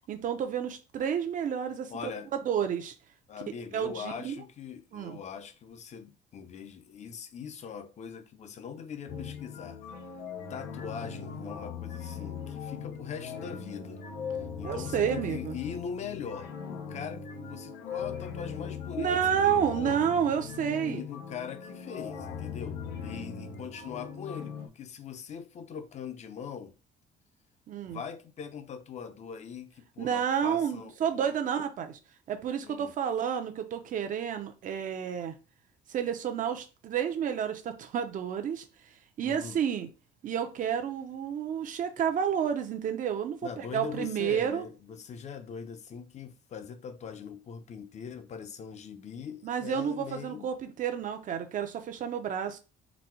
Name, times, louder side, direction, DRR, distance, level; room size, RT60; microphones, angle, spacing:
voice 1, 0.1-1.9 2.4-2.9 3.7-4.3 4.9-5.2 14.6-15.6 19.0-21.0 27.7-28.0 30.0-32.0 32.3-35.3 35.9-38.6 39.2-39.9 40.2-44.6 49.4-52.6, right 8 dB, 50° right, 0.7 m, -30 dB
voice 2, 1.9-2.3 3.3-9.8 10.5-14.0 14.6-20.1 20.8-26.7 27.8-31.3 32.6-32.9 39.2-39.6 43.4-50.5, left 7 dB, 40° left, 0.7 m, -41 dB
sound 1, 9.1-24.7, left 6 dB, 85° left, 0.7 m, -39 dB
4.1 x 2.2 x 4.3 m
cardioid pair, 110°, 17 cm